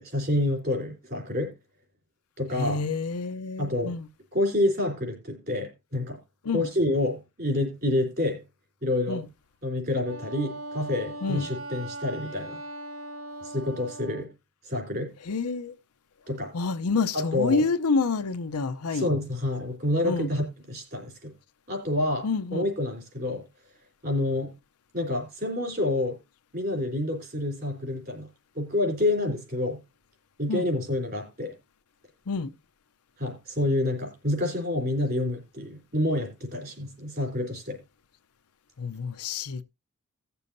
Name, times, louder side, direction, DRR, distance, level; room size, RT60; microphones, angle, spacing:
voice 1, 0.0-1.5 2.4-2.8 3.6-4.0 4.3-6.2 6.5-8.4 8.8-9.2 9.6-12.6 13.4-14.3 14.6-15.1 16.3-16.5 17.1-17.7 18.9-21.3 21.7-23.4 24.0-24.5 24.9-26.2 26.5-28.3 28.6-29.8 30.4-31.5 33.2-37.8, left 1 dB, 45° right, 3.7 m, -28 dB
voice 2, 2.5-4.1 6.4-6.7 9.1-9.3 11.2-11.5 15.3-15.7 16.5-19.1 20.0-20.3 22.2-22.7 30.5-30.7 32.3-32.5 38.8-39.6, left 4 dB, 90° left, 0.7 m, -28 dB
Wind instrument woodwind instrument, 10.0-14.3, right 1 dB, 65° right, 1.0 m, -39 dB
17.5 x 6.9 x 2.7 m
head